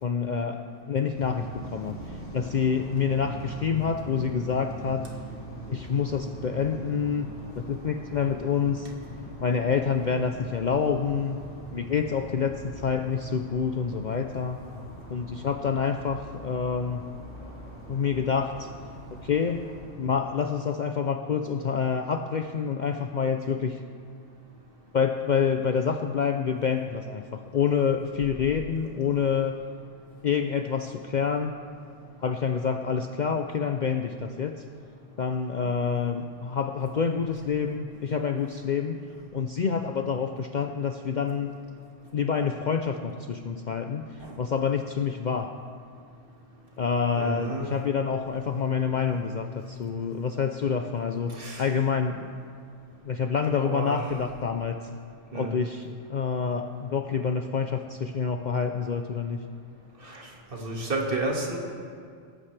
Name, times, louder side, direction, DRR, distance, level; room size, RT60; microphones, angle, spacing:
voice 1, 0.0-5.1 5.7-7.3 7.6-8.9 9.4-11.4 11.7-14.6 15.1-17.1 17.9-18.7 19.1-19.7 20.0-23.8 24.9-29.6 30.2-31.5 32.2-34.6 35.2-39.0 39.3-41.5 42.1-45.6 46.8-52.3 53.0-54.9 55.3-59.4, left 6 dB, 55° left, 6 dB, 0.6 m, -27 dB
sound 1, 1.1-20.6, right 1 dB, 75° left, 4.8 m, -42 dB
voice 2, 47.2-47.7 51.3-51.7 53.6-54.0 55.3-55.6 60.0-61.6, right 2 dB, 50° right, -1 dB, 2.0 m, -32 dB
17.5 x 14.5 x 3.3 m, 2.2 s
omnidirectional pair, 1.2 m